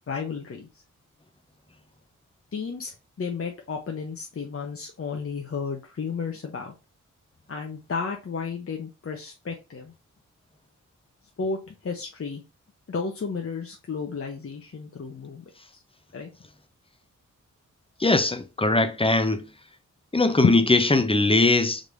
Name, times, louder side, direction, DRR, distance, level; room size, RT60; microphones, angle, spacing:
voice 1, 0.1-0.7 2.5-6.7 7.5-9.9 11.4-12.4 12.9-15.4 16.1-16.3 20.4-20.7, left 5 dB, 45° left, 0.9 m, -32 dB
voice 2, 18.0-19.4 20.1-21.8, left 2 dB, 15° left, 0.7 m, -20 dB
5.2 x 3.2 x 2.6 m
cardioid pair, 50°, 32 cm